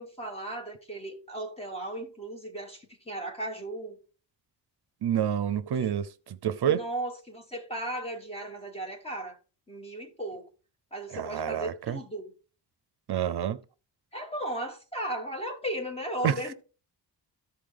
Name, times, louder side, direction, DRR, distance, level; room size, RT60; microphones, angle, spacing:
voice 1, 0.0-4.0 5.8-6.0 6.7-9.4 9.7-10.5 10.9-12.3 14.1-16.5, right 1 dB, 15° left, 2.0 m, -36 dB
voice 2, 5.0-6.9 11.1-12.0 13.1-13.6 16.2-16.4, right 9 dB, 65° right, 0.6 m, -28 dB
14.0 x 5.1 x 3.7 m
wide cardioid pair, 170°, 43 cm